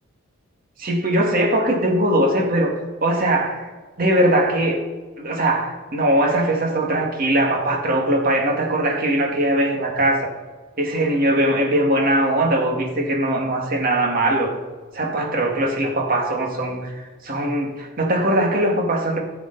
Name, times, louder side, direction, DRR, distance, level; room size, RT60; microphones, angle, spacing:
voice 1, 0.8-3.7 4.0-4.8 5.2-10.3 10.8-14.5 14.9-19.2, right 1 dB, 45° right, 1 dB, 2.0 m, -20 dB
15.0 x 6.8 x 4.0 m, 1.4 s
head